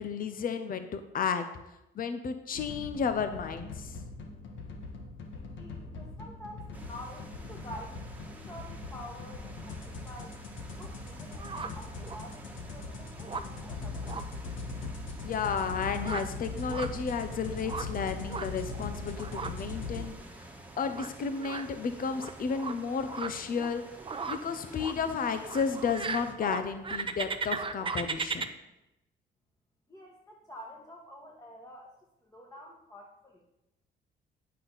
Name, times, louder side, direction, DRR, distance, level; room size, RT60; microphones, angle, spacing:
voice 1, 0.0-1.5 2.0-4.0 15.2-20.2 20.8-23.8 24.3-28.5, left 6 dB, 45° left, 9 dB, 0.7 m, -32 dB
sound 1, 2.5-20.1, left 3 dB, 75° left, 1.4 m, -41 dB
voice 2, 5.3-10.4 10.8-14.2 29.9-31.9 32.2-33.5, equal, 15° left, -1 dB, 1.4 m, -48 dB
sound 2, 6.7-26.3, right 1 dB, 10° right, 1.4 m, -51 dB
sound 3, 10.1-28.5, right 4 dB, 25° right, 0.7 m, -40 dB
9.3 x 7.7 x 4.0 m, 0.92 s
cardioid pair, 90°, 20 cm